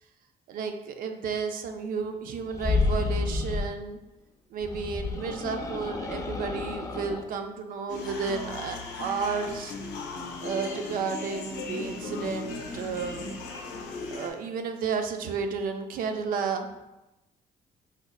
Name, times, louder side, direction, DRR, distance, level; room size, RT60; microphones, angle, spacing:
voice 1, 0.5-4.0 4.5-9.8 10.4-13.3 14.1-16.7, right 5 dB, 55° right, 6 dB, 0.4 m, -32 dB
sound 1, 2.5-3.7 4.6-7.2, left 3 dB, 20° left, 0.3 m, -30 dB
sound 2, 7.9-14.3, left 3 dB, 80° left, 0.6 m, -37 dB
4.8 x 2.1 x 2.3 m, 1.0 s
cardioid pair, 110°, 17 cm